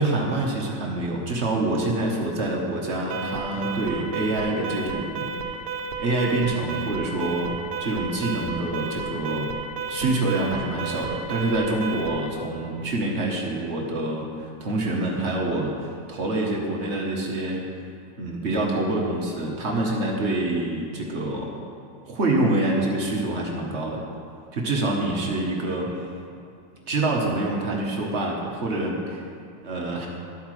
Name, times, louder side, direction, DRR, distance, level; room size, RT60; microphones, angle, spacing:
voice 1, 0.0-5.3 6.0-7.5 7.8-9.5 9.9-17.7 18.2-21.6 22.1-24.0 24.5-26.1 26.9-29.2 29.6-30.1, right 2 dB, 45° right, -1 dB, 1.2 m, -26 dB
Alarm, 3.1-12.3, right 4 dB, 75° right, 1.4 m, -32 dB
12.0 x 8.0 x 3.2 m, 2.4 s
omnidirectional pair, 1.9 m